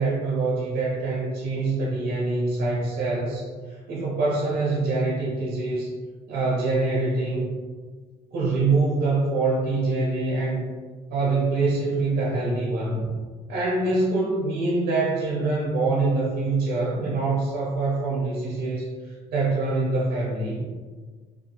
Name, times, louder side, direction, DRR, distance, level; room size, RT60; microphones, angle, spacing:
voice 1, 0.0-5.9 6.3-7.5 8.3-10.6 11.1-13.1 13.5-20.6, right 3 dB, 75° right, -5 dB, 0.7 m, -25 dB
2.5 x 2.2 x 2.7 m, 1.5 s
cardioid pair, 110°, 17 cm